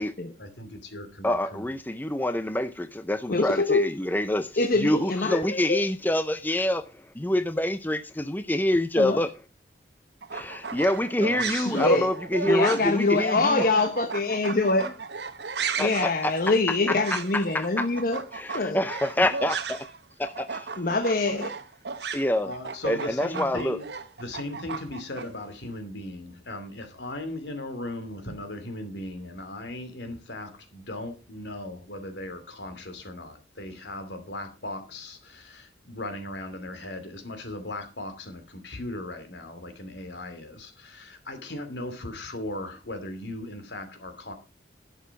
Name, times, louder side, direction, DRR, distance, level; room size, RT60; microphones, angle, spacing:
voice 1, 0.4-1.7 11.2-12.1 22.1-23.8 24.2-44.3, left 1 dB, 80° left, 2.8 m, -37 dB
voice 2, 1.2-4.5 4.8-6.8 7.2-9.3 10.3-13.6 15.8-16.3 16.9-17.2 17.5-17.9 18.3-19.8 20.2-20.7 22.1-22.5 22.8-23.8, left 1 dB, 10° left, 0.6 m, -26 dB
voice 3, 3.3-3.9 4.6-5.8 9.0-9.2 11.4-12.1 12.5-15.0 15.8-18.2 18.5-18.8 20.8-21.5, left 3 dB, 55° left, 1.0 m, -24 dB
sound 1, 10.2-20.0 20.2-25.3, right 5 dB, 70° right, 1.0 m, -35 dB
11.5 x 7.2 x 5.9 m
head